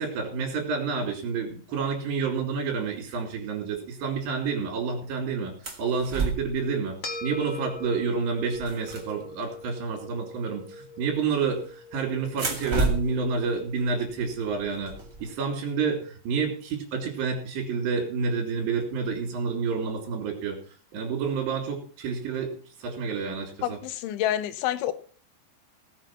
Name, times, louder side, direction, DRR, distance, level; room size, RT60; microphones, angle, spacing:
voice 1, 0.0-5.5 5.8-14.9 15.2-20.6 20.9-22.5 22.8-23.5, right 5 dB, 70° right, -1 dB, 4.8 m, -29 dB
sound 1, 5.6-6.7 7.8-7.9 8.2-9.7 11.1-11.7 12.3-15.3, right 3 dB, 30° right, 1.4 m, -32 dB
sound 2, 7.0-15.6, left 2 dB, 60° left, 1.2 m, -42 dB
voice 2, 23.6-24.9, left 12 dB, 90° left, 12 dB, 3.4 m, -28 dB
17.5 x 6.7 x 5.8 m, 0.43 s
omnidirectional pair, 5.3 m